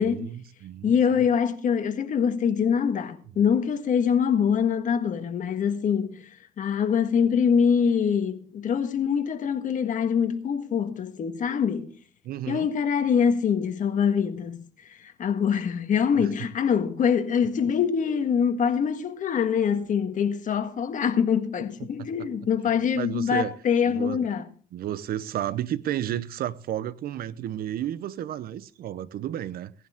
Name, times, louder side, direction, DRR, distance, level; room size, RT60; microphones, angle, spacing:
voice 1, 0.0-0.9 12.2-12.7 16.1-16.3 21.8-22.3 22.9-23.5 23.8-24.2 24.7-29.7, right 11 dB, 60° right, 0.9 m, -32 dB
voice 2, 0.8-6.2 6.6-11.9 12.5-14.6 15.0-24.4, left 7 dB, 50° left, 1.6 m, -24 dB
17.5 x 11.0 x 3.6 m
cardioid pair, 110°, 17 cm